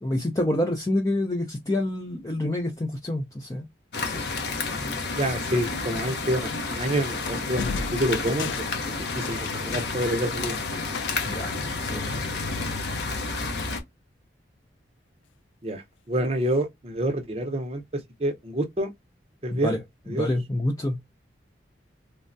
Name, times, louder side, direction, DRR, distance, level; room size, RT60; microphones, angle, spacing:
voice 1, 0.0-3.7 4.0-4.2 11.2-11.5 11.8-12.1 19.5-19.8 20.1-21.0, left 1 dB, 20° left, 0.4 m, -27 dB
sound 1, 3.9-13.8, left 3 dB, 60° left, 0.7 m, -30 dB
voice 2, 5.1-10.5 15.6-18.9 19.4-19.7 20.1-20.3, right 1 dB, 30° right, 0.7 m, -28 dB
sound 2, 7.5-11.5, left 5 dB, 80° left, 0.3 m, -37 dB
3.3 x 2.1 x 2.5 m
head